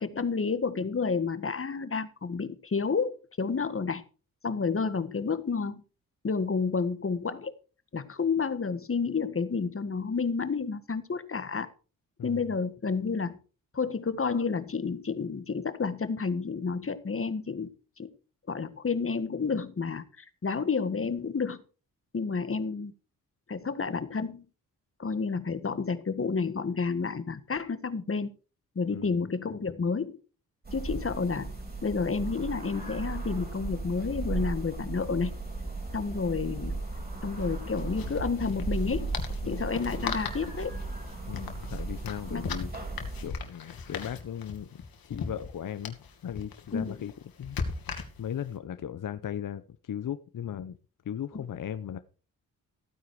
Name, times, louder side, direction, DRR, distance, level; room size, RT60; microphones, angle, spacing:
voice 1, 0.0-3.1 3.4-4.0 4.4-5.8 6.2-7.5 7.9-11.7 12.2-13.4 13.7-17.7 18.0-18.1 18.5-21.6 22.1-22.9 23.5-24.4 25.0-28.3 28.7-30.2 30.7-31.5 31.8-35.3 35.9-36.8 37.2-39.1 39.4-40.8 42.3-42.5 46.7-47.0 51.3-51.4, left 5 dB, 40° left, 12 dB, 1.7 m, -30 dB
sound 1, 30.6-43.3, right 3 dB, 25° right, 5.6 m, -36 dB
sound 2, 35.3-35.4 35.7-35.8 37.3-48.5, left 5 dB, 80° left, 2.5 m, -39 dB
voice 2, 41.3-42.7 43.2-47.1 47.4-47.6 48.2-50.8 51.0-52.0, left 9 dB, 60° left, 11 dB, 0.9 m, -37 dB
15.5 x 9.2 x 4.9 m, 0.37 s
cardioid pair, 65°, 35 cm